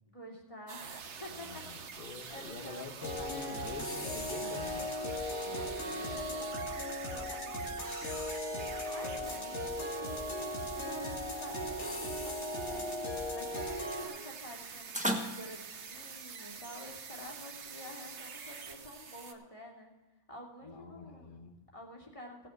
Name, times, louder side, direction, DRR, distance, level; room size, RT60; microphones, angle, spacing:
voice 1, 0.0-2.9 5.4-7.8 8.9-19.9 20.3-21.4 21.7-22.5, left 1 dB, 25° left, -2 dB, 2.8 m, -49 dB
sound 1, 0.7-15.5, equal, 5° right, 1.4 m, -46 dB
sound 2, 0.7-19.3, right 6 dB, 70° right, 1.3 m, -47 dB
voice 2, 1.3-4.9 20.6-21.6, left 5 dB, 45° left, 6 dB, 1.3 m, -46 dB
sound 3, 3.0-14.1, left 1 dB, 70° left, 2.5 m, -37 dB
16.5 x 7.0 x 5.7 m, 1.1 s
omnidirectional pair, 1.2 m